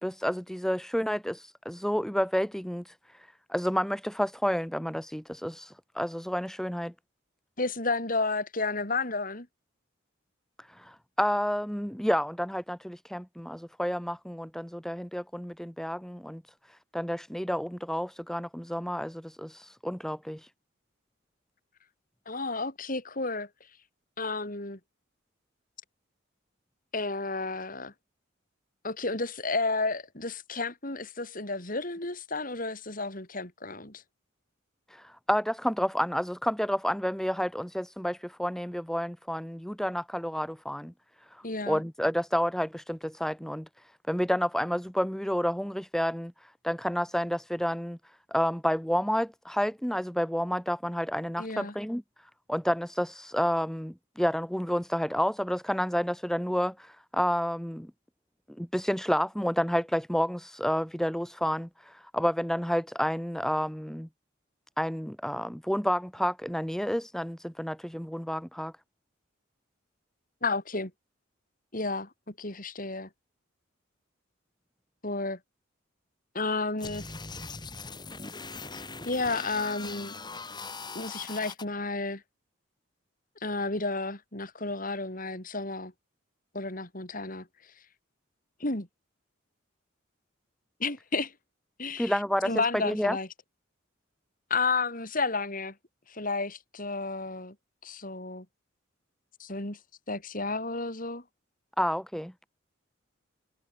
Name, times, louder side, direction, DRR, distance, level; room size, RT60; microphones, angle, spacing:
voice 1, 0.0-2.9 3.5-6.9 10.7-16.4 16.9-20.4 34.9-40.9 41.3-43.7 44.1-46.3 46.6-48.0 48.3-52.0 52.5-57.9 58.6-64.1 64.8-68.7 92.0-92.5 92.8-93.2 101.8-102.3, equal, ahead, 1.4 m, -30 dB
voice 2, 7.6-9.5 22.3-23.5 24.2-24.8 26.9-27.9 28.8-34.0 41.4-41.8 51.4-51.7 70.4-70.9 71.7-73.1 75.0-75.4 76.3-77.0 78.7-80.1 80.9-82.2 83.4-85.9 86.5-87.5 88.6-88.9 90.8-91.3 91.8-92.2 92.4-93.3 94.5-95.8 96.1-97.6 97.8-98.5 99.4-99.8 100.1-101.2, left 3 dB, 40° left, 4.1 m, -32 dB
sound 1, 76.8-81.6, left 4 dB, 20° left, 6.7 m, -40 dB
head